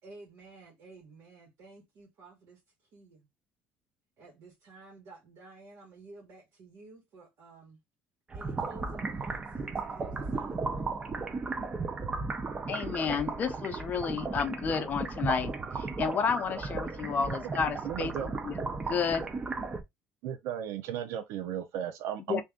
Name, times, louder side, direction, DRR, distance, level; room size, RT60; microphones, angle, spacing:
voice 1, 0.0-3.3 4.2-7.8 8.3-11.0, right 3 dB, 55° right, 1.7 m, -52 dB
sound 1, 8.3-19.8, right 3 dB, 20° right, 0.5 m, -35 dB
voice 2, 12.7-19.3 22.3-22.4, left 6 dB, 35° left, 0.6 m, -31 dB
voice 3, 17.8-18.3 20.2-22.4, right 10 dB, 75° right, 0.6 m, -35 dB
3.3 x 2.7 x 3.6 m
cardioid pair, 145°, 5 cm